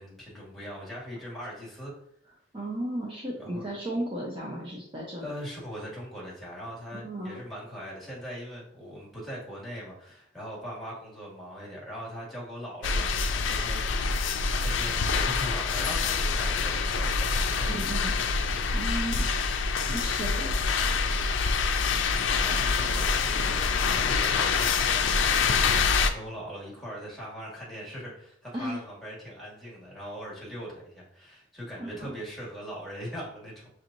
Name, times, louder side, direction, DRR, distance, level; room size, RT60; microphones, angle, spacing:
voice 1, 0.0-1.9 3.4-3.7 5.2-14.2 14.6-18.1 22.0-33.7, equal, ahead, -6 dB, 1.5 m, -40 dB
voice 2, 2.5-5.2 6.9-7.4 17.7-18.2 18.7-19.3 19.9-20.6 28.5-28.8 31.8-32.1, right 1 dB, 30° right, -3 dB, 0.7 m, -34 dB
sound 1, 12.8-26.1, left 5 dB, 70° left, 0.4 m, -26 dB
6.2 x 3.0 x 2.6 m, 0.68 s
head